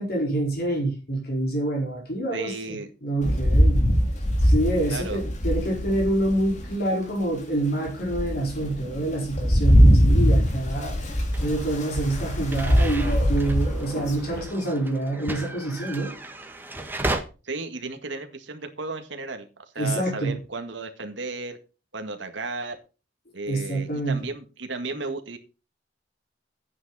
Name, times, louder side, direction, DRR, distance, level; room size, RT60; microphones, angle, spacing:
voice 1, 0.0-3.8 4.4-11.1 11.4-16.1 19.8-20.3 23.5-24.3, right 1 dB, 55° left, 0 dB, 4.7 m, -27 dB
voice 2, 2.3-2.9 4.9-5.2 17.4-19.5 19.7-21.6 21.9-22.8 23.3-25.4, right 3 dB, 75° right, 6 dB, 1.9 m, -34 dB
Rain, 3.2-6.7 7.3-7.4 7.9-14.4, equal, 40° left, 2.8 m, -22 dB
sound 1, 11.3-17.2, right 2 dB, 10° right, 1.6 m, -35 dB
11.5 x 9.4 x 4.2 m, 0.32 s
head